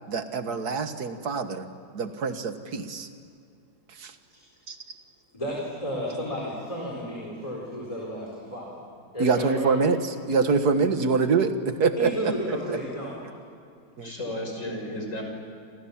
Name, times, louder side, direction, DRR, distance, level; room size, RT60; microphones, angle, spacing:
voice 1, 0.1-1.7 1.9-3.1 4.0-4.1 4.7-4.8 9.2-12.6 14.0-14.1, right 4 dB, 60° right, 8 dB, 2.0 m, -25 dB
voice 2, 5.3-8.7 9.1-9.7 12.0-13.2, equal, 20° left, -3 dB, 4.7 m, -32 dB
voice 3, 14.0-15.2, left 1 dB, 45° left, 2 dB, 6.3 m, -33 dB
28.5 x 27.5 x 7.4 m, 2.5 s
omnidirectional pair, 1.9 m